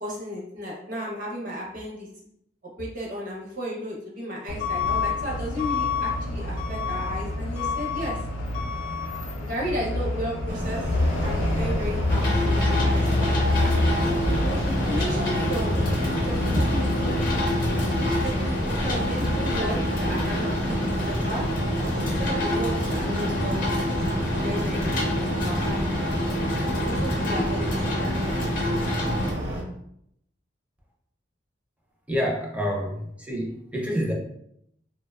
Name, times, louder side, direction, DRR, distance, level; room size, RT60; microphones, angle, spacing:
voice 1, 0.0-2.1 2.8-8.2 9.4-10.8 11.2-13.7 14.4-15.9 16.2-17.3 18.2-21.4 21.8-25.9 26.8-28.2, equal, 45° right, -3 dB, 0.7 m, -33 dB
Truck / Alarm, 4.5-21.7, left 3 dB, 90° left, 0.3 m, -29 dB
sound 1, 10.5-29.6, equal, 70° right, 1.0 m, -30 dB
sound 2, 12.1-29.3, equal, 50° left, 0.6 m, -28 dB
voice 2, 32.1-34.1, equal, 10° right, -1 dB, 0.4 m, -28 dB
2.6 x 2.1 x 2.2 m, 0.73 s
head